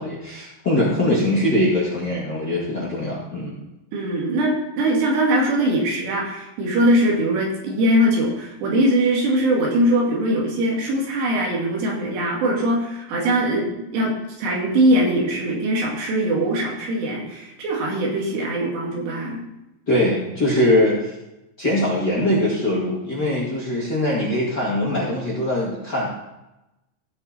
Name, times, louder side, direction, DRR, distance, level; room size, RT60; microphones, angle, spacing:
voice 1, 0.0-3.6 19.9-21.1 21.6-26.1, left 1 dB, 35° left, -7 dB, 2.0 m, -22 dB
voice 2, 3.9-19.4, right 1 dB, 75° right, -1 dB, 4.1 m, -21 dB
16.5 x 5.6 x 4.2 m, 0.95 s
omnidirectional pair, 4.9 m